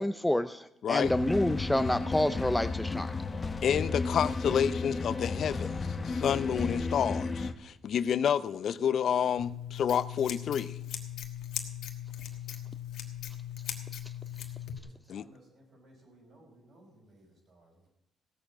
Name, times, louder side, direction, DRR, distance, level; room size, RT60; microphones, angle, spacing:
voice 1, 0.0-3.1, left 1 dB, 5° left, 0.5 m, -28 dB
sound 1, 1.0-7.5, left 4 dB, 30° left, 1.0 m, -33 dB
voice 2, 3.6-5.8 6.0-10.8 15.1-15.2, left 8 dB, 65° left, 0.5 m, -29 dB
Scissors, 9.4-14.8, left 10 dB, 80° left, 1.4 m, -39 dB
voice 3, 14.8-17.9, right 1 dB, 55° right, 5.6 m, -59 dB
16.0 x 6.8 x 7.4 m
cardioid pair, 90°, 0 cm